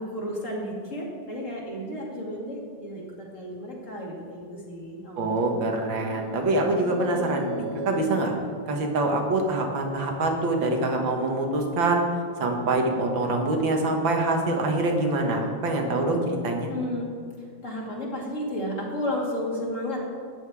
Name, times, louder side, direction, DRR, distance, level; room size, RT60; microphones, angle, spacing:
voice 1, 0.0-5.5 16.7-17.1 17.6-20.0, left 1 dB, 40° left, -3 dB, 2.7 m, -32 dB
voice 2, 5.2-8.3 8.7-12.0 12.4-16.7, right 2 dB, 90° right, 2 dB, 2.2 m, -25 dB
sound 1, 5.4-9.2, right 1 dB, 70° right, 1.9 m, -37 dB
13.0 x 9.5 x 4.8 m, 2.2 s
omnidirectional pair, 2.0 m